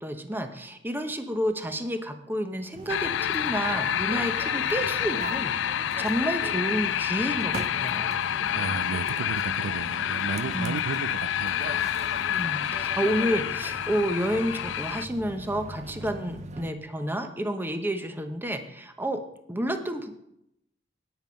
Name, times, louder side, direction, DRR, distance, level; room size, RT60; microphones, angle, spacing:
voice 1, 0.0-8.1 10.4-10.8 12.3-19.2 19.5-20.1, equal, 10° right, 0.9 m, -30 dB
sound 1, 2.7-16.7, right 3 dB, 40° right, 0.5 m, -41 dB
sound 2, 2.9-15.0, left 10 dB, 70° left, 0.3 m, -28 dB
voice 2, 8.5-11.9, right 5 dB, 90° right, 0.4 m, -34 dB
9.3 x 9.0 x 5.2 m
head